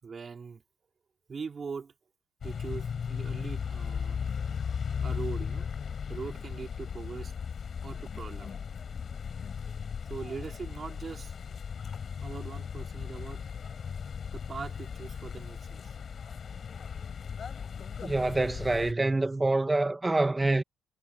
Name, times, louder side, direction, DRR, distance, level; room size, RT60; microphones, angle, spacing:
voice 1, 0.0-0.6 1.3-1.9 2.4-4.2 5.0-5.8 6.1-7.4 7.8-8.6 10.1-11.6 12.2-13.5 13.8-13.9 14.3-16.3, right 5 dB, 40° right, 3.6 m, -41 dB
sound 1, 2.4-18.9, left 6 dB, 50° left, 4.3 m, -37 dB
voice 2, 18.0-20.6, right 2 dB, 20° right, 1.4 m, -26 dB
cardioid pair, 90°, 0 cm